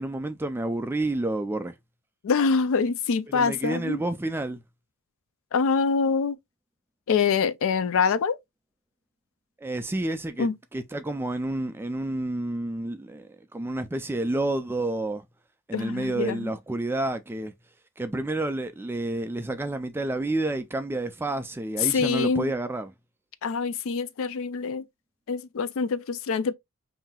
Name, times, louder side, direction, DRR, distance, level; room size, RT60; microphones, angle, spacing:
voice 1, 0.0-1.7 3.3-4.6 9.6-15.2 15.7-17.5 18.0-22.9, right 2 dB, 10° right, 0.3 m, -29 dB
voice 2, 2.2-4.0 5.5-6.4 7.1-8.4 10.4-10.5 15.7-16.5 21.8-22.5 23.4-24.8 25.3-26.5, left 5 dB, 60° left, 0.4 m, -25 dB
5.6 x 2.7 x 2.2 m
head